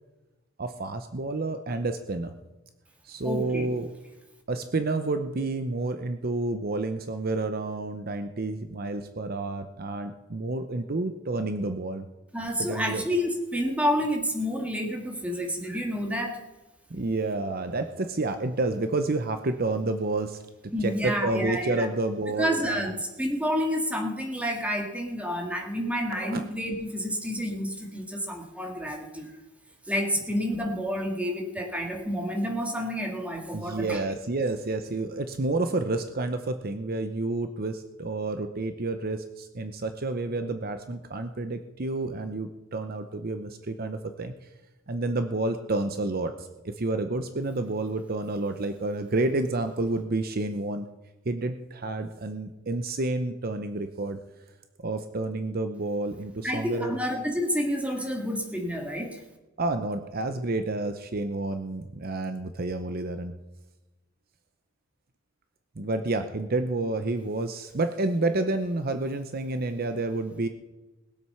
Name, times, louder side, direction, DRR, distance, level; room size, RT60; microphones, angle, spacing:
voice 1, 0.6-2.3 3.0-3.9 4.5-12.1 12.6-13.0 16.9-20.4 20.8-22.9 26.1-26.4 33.5-44.5 44.9-50.9 51.2-54.2 54.8-57.0 59.6-63.3 65.8-70.5, right 2 dB, 45° right, 8 dB, 0.7 m, -29 dB
voice 2, 3.2-3.7 12.3-16.4 20.7-21.9 22.4-29.3 29.9-34.0 56.4-59.2, equal, 5° right, 1 dB, 2.3 m, -29 dB
20.5 x 7.9 x 5.7 m, 1.1 s
head